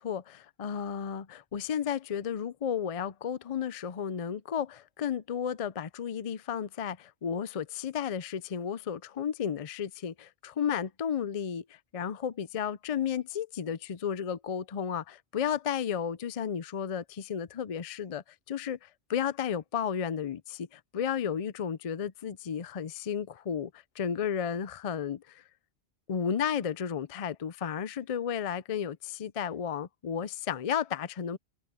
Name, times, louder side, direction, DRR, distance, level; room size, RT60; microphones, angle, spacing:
voice 1, 0.0-11.6 11.9-23.7 24.0-25.4 26.1-31.4, left 8 dB, 45° left, 0.5 m, -33 dB
omnidirectional pair, 1.1 m